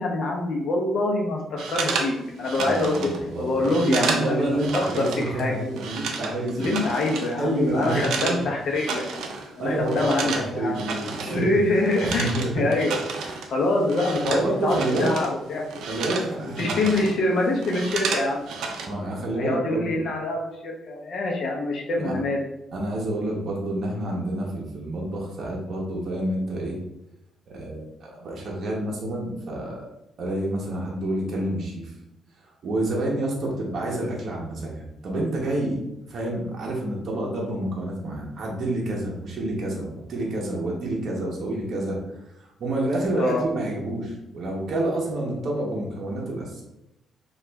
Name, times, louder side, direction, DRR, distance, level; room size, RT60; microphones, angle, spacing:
voice 1, 0.0-3.1 3.4-4.4 4.7-5.6 6.6-9.0 9.5-10.8 11.3-13.0 13.2-15.9 16.6-18.4 19.3-22.4 43.1-43.4, left 2 dB, 50° left, 0 dB, 0.6 m, -25 dB
sound 1, 1.6-5.3 5.6-8.4 8.7-9.5 9.7-15.3 15.6-17.2 17.5-18.9, right 4 dB, 80° right, 0.4 m, -32 dB
voice 2, 2.5-6.7 7.4-8.4 9.3-12.6 13.2-13.4 14.2-15.1 15.9-16.9 18.9-20.0 22.0-22.2 22.7-26.8 27.5-29.8 30.2-31.9 32.6-35.8 36.1-42.0 42.6-46.6, right 1 dB, 45° right, -2 dB, 0.7 m, -28 dB
3.0 x 2.3 x 3.3 m, 0.87 s
cardioid pair, 180°, 0 cm